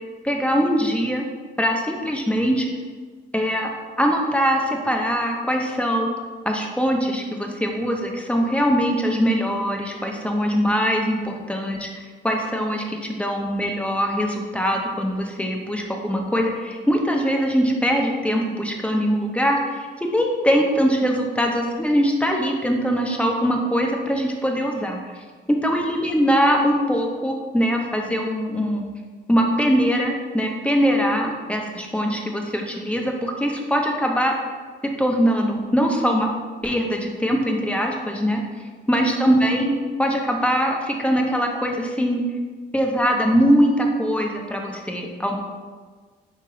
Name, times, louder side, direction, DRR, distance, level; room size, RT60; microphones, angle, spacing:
voice 1, 0.2-1.2 1.6-2.7 3.3-3.7 4.0-6.1 6.5-11.9 12.2-12.8 13.1-25.2 25.6-28.8 29.3-34.3 35.0-36.3 36.6-38.4 38.9-42.2 42.7-45.4, equal, 5° left, 1 dB, 0.6 m, -22 dB
3.2 x 2.9 x 4.6 m, 1.5 s
cardioid pair, 90°, 20 cm